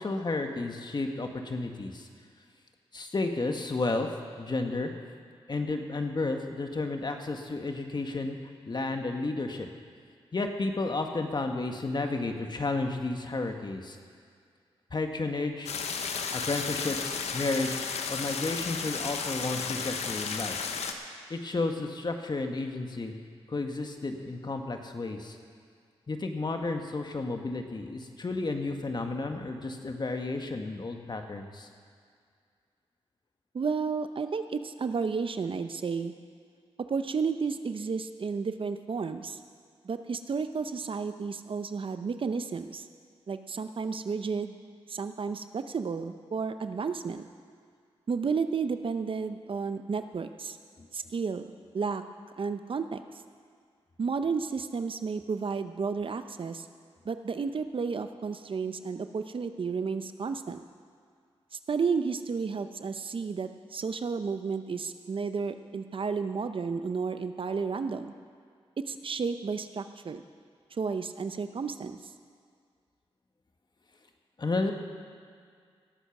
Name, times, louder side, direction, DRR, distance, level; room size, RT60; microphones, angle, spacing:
voice 1, 0.0-2.1 2.9-4.1 4.4-4.9 5.5-8.4 8.7-9.7 10.3-14.0 14.9-15.7 16.3-17.8 18.1-20.5 21.3-23.1 23.5-25.4 26.1-31.7 50.8-50.9 74.4-74.7, left 3 dB, 45° left, 4 dB, 1.5 m, -32 dB
sound 1, 15.7-20.9, left 5 dB, 85° left, 0.9 m, -33 dB
voice 2, 33.5-36.1 36.8-39.4 39.8-42.9 43.3-44.6 44.9-47.3 48.1-50.6 50.9-51.5 51.7-52.0 52.4-53.0 54.0-56.7 57.0-60.6 61.5-68.1 68.8-70.2 70.7-72.0, right 5 dB, 55° right, 9 dB, 0.7 m, -32 dB
18.0 x 8.1 x 6.0 m, 2.1 s
cardioid pair, 55°, 11 cm